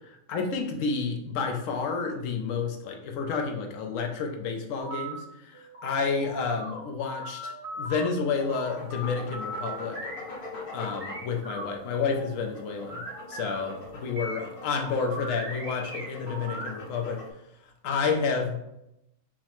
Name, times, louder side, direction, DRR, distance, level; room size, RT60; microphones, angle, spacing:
voice 1, 0.1-10.0 10.7-13.0 13.3-13.7 14.0-17.2 17.8-18.6, left 5 dB, 80° left, 3 dB, 1.0 m, -30 dB
sound 1, 4.8-5.1 5.5-8.1 8.5-10.2 10.6-13.5 14.2-16.9, right 1 dB, 40° right, 1.1 m, -39 dB
sound 2, 8.4-17.3, left 2 dB, 50° left, 0.9 m, -43 dB
5.6 x 2.0 x 3.0 m, 0.84 s
omnidirectional pair, 1.4 m